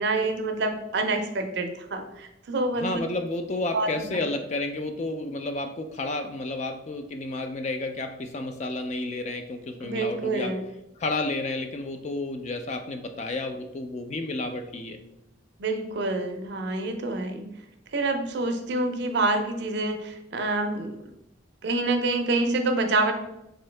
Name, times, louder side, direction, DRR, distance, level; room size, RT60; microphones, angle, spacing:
voice 1, 0.0-3.1 3.7-4.1 9.8-10.6 15.6-17.5 17.9-21.0 21.6-23.1, right 2 dB, 55° right, 5 dB, 0.4 m, -27 dB
voice 2, 2.8-10.5 11.0-15.0, left 2 dB, 35° left, 6 dB, 0.3 m, -31 dB
3.8 x 2.7 x 3.2 m, 0.85 s
head